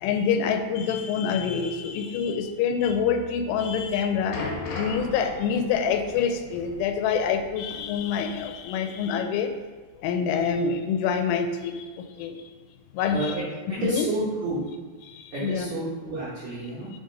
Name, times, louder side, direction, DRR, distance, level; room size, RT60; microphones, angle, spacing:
voice 1, 0.0-4.4 4.8-9.5 10.0-12.4 12.9-13.3 13.8-14.1 15.1-15.7, left 6 dB, 90° left, 6 dB, 3.0 m, -26 dB
sound 1, 3.9-8.6 8.9-9.0 9.8-9.9, left 3 dB, 75° left, 2.5 m, -38 dB
voice 2, 13.1-13.4 13.7-14.7 15.3-16.9, right 1 dB, 85° right, -8 dB, 1.6 m, -30 dB
7.4 x 2.6 x 5.1 m, 1.4 s
omnidirectional pair, 5.4 m